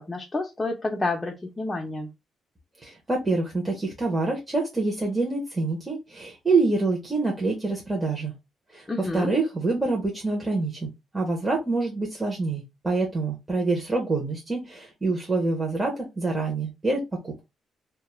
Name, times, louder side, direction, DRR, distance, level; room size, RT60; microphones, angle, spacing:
voice 1, 0.1-2.1 8.9-9.3, left 2 dB, 20° left, 0 dB, 0.5 m, -29 dB
voice 2, 2.8-8.3 8.7-17.4, right 3 dB, 15° right, -1 dB, 0.7 m, -26 dB
2.3 x 2.1 x 3.0 m, 0.23 s
cardioid pair, 105°, 0 cm